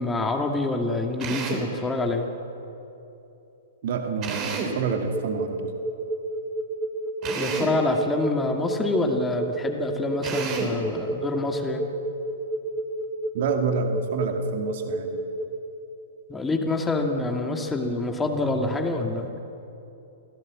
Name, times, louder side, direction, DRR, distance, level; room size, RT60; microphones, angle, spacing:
voice 1, 0.0-2.3 7.3-11.8 16.3-19.3, left 2 dB, 10° left, 3 dB, 2.2 m, -26 dB
Drill, 1.2-1.7 4.2-4.8 7.2-7.8 10.2-10.8, right 5 dB, 30° right, 3.5 m, -30 dB
voice 2, 3.8-5.7 13.3-15.3, right 5 dB, 50° right, 5 dB, 2.0 m, -28 dB
sound 1, 4.9-15.4, right 1 dB, 5° right, 2.0 m, -30 dB
27.5 x 17.0 x 7.6 m, 2.9 s
figure-of-eight pair, 110°, 0 cm